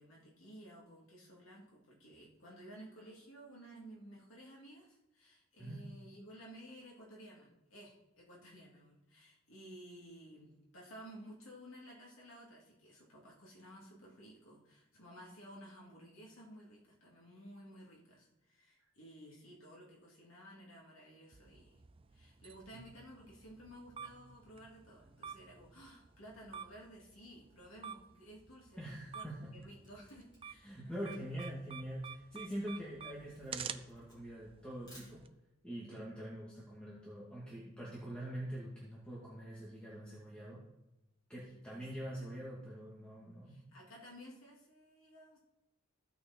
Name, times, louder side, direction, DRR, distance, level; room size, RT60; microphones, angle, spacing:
voice 1, 0.0-21.8 22.1-31.0 31.3-31.5 32.6-32.7 41.7-42.6 43.5-45.4, equal, 75° left, -3 dB, 3.1 m, -55 dB
sound 1, 21.3-35.3, right 7 dB, 25° right, 0.4 m, -51 dB
voice 2, 28.8-29.5 30.6-35.2 35.6-40.6 41.3-43.6, equal, 5° left, -6 dB, 2.0 m, -44 dB
Camera, 29.8-35.6, equal, 20° left, 4.2 m, -63 dB
15.0 x 6.0 x 4.4 m, 0.96 s
head